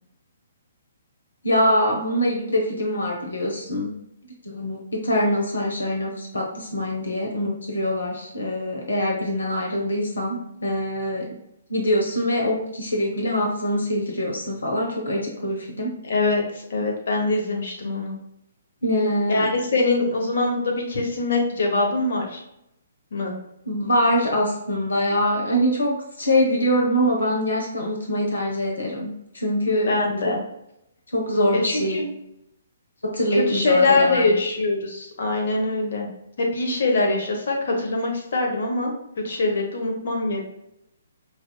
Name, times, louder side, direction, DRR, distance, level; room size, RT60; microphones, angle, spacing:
voice 1, 1.4-3.9 4.4-4.8 5.0-11.3 11.7-15.9 18.8-19.5 23.7-29.9 30.2-30.3 31.1-32.0 33.0-34.4, equal, 70° left, -1 dB, 0.9 m, -24 dB
voice 2, 16.0-18.2 19.3-22.4 23.1-23.3 29.8-30.4 31.6-32.1 33.3-36.1 36.4-38.9 39.2-40.4, left 3 dB, 55° left, 1 dB, 1.1 m, -23 dB
5.2 x 2.7 x 2.3 m, 0.81 s
figure-of-eight pair, 125°, 0 cm